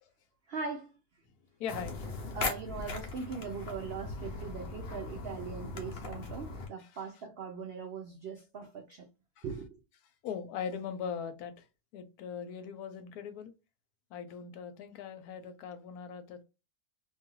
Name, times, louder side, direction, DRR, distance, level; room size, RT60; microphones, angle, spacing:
voice 1, 0.5-0.9 2.3-9.1 9.4-9.8, right 5 dB, 90° right, 0.5 m, -40 dB
voice 2, 1.6-2.1 6.8-6.9 9.4-9.5 10.2-11.6 11.9-13.5 14.1-16.4, left 7 dB, 85° left, 1.1 m, -40 dB
sound 1, 1.7-6.7, left 3 dB, 50° left, 0.7 m, -39 dB
2.6 x 2.3 x 2.9 m
omnidirectional pair, 1.6 m